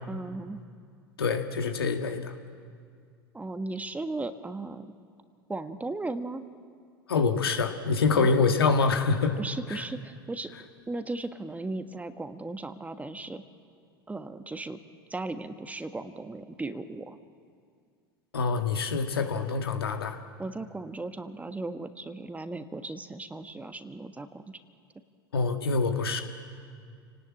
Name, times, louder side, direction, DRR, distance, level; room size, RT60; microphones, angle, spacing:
voice 1, 0.0-0.6 3.3-4.9 5.5-6.4 8.1-8.5 9.4-10.5 10.9-13.4 14.1-14.8 15.1-17.2 20.4-24.6, right 2 dB, 10° right, 9 dB, 1.5 m, -36 dB
voice 2, 1.2-2.3 7.1-9.4 9.7-9.8 18.3-20.2 25.3-26.2, left 4 dB, 80° left, 5 dB, 2.0 m, -25 dB
30.0 x 19.0 x 8.6 m, 2.2 s
figure-of-eight pair, 80°, 12 cm